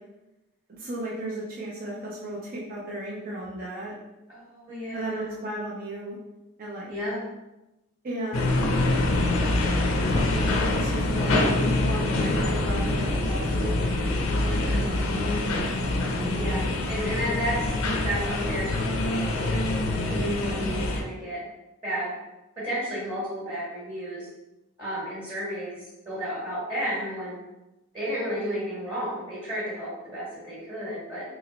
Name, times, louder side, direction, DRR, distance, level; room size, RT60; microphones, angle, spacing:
voice 1, 0.7-3.9 4.9-6.2 6.6-6.9 8.0-8.6 10.0-11.4 11.8-13.9, right 1 dB, 40° right, -6 dB, 0.7 m, -34 dB
voice 2, 4.3-5.3 6.9-7.2 14.5-14.8 16.3-17.7 18.0-19.6 20.0-21.4 21.8-22.1 22.6-24.3 24.8-27.4 27.9-31.2, equal, 20° right, -9 dB, 1.4 m, -32 dB
sound 1, 8.3-21.0, left 2 dB, 85° left, 0.6 m, -25 dB
3.7 x 3.0 x 3.0 m, 0.97 s
head